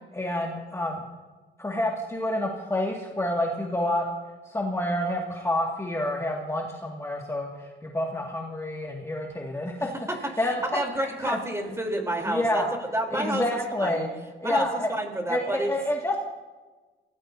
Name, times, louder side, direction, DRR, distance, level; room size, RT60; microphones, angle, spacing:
voice 1, 0.2-1.0 1.6-4.1 4.5-9.9 10.4-10.5 11.2-11.4 12.3-12.7 13.1-14.1 14.4-14.9 15.3-16.2, left 1 dB, 15° left, -1 dB, 2.2 m, -28 dB
voice 2, 9.8-14.1 14.4-15.7, right 1 dB, 15° right, 2 dB, 3.8 m, -30 dB
25.0 x 17.5 x 2.8 m, 1.3 s
cardioid pair, 90°, 20 cm